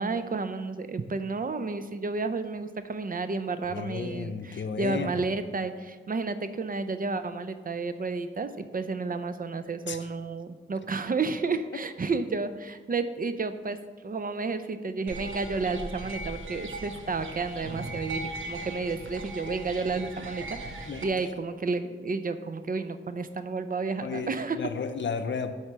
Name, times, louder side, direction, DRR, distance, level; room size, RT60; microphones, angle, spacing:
voice 1, 0.0-24.6, right 4 dB, 45° right, 11 dB, 0.5 m, -31 dB
voice 2, 3.7-5.3 9.9-10.1 20.8-21.3 24.0-25.5, left 5 dB, 65° left, 9 dB, 0.6 m, -33 dB
sound 1, 15.1-21.0, right 2 dB, 80° right, 0.9 m, -38 dB
8.0 x 4.3 x 6.1 m, 1.4 s
wide cardioid pair, 65°, 20 cm